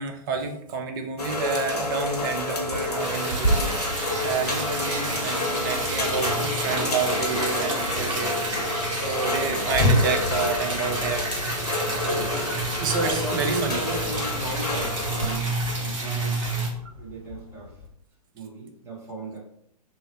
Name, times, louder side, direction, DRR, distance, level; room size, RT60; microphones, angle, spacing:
voice 1, 0.0-11.4 12.0-12.2 12.8-13.8, right 5 dB, 35° right, 5 dB, 0.5 m, -30 dB
sound 1, 1.2-15.4, left 1 dB, 80° left, 0.7 m, -29 dB
Liquid, 3.0-16.7, right 1 dB, 55° right, 1.1 m, -30 dB
Wild animals, 9.3-17.9, left 1 dB, 10° left, 1.3 m, -33 dB
voice 2, 12.1-12.5 13.0-16.6 17.0-17.8 18.3-19.4, right 1 dB, 15° right, -6 dB, 1.2 m, -35 dB
2.8 x 2.7 x 3.1 m, 0.72 s
figure-of-eight pair, 115°, 20 cm